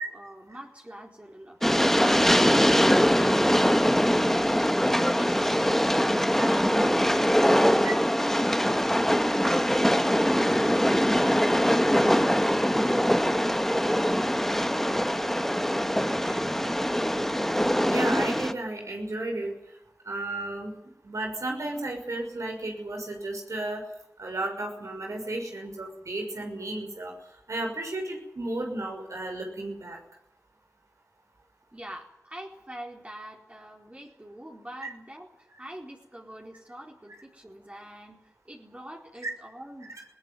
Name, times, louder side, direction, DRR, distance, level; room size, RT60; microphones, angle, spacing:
voice 1, 0.0-7.9 15.8-16.9 31.7-39.9, right 1 dB, 25° right, -1 dB, 4.2 m, -44 dB
Train, 1.6-18.5, equal, 5° left, 1.6 m, -23 dB
voice 2, 17.9-19.5 20.1-20.8 21.0-23.8 24.2-27.1 27.5-30.0 34.8-34.9, right 2 dB, 80° right, 2 dB, 6.2 m, -33 dB
20.0 x 18.0 x 9.8 m, 0.83 s
cardioid pair, 40°, 5 cm